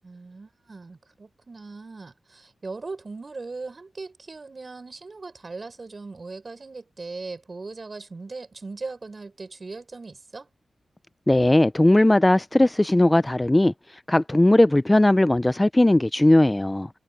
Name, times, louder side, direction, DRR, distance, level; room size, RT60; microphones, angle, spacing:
voice 1, 0.0-10.5, right 3 dB, 40° right, 6.0 m, -39 dB
voice 2, 11.3-13.7 14.1-16.9, left 1 dB, 15° left, 0.3 m, -18 dB
wide cardioid pair, 95°, 0 cm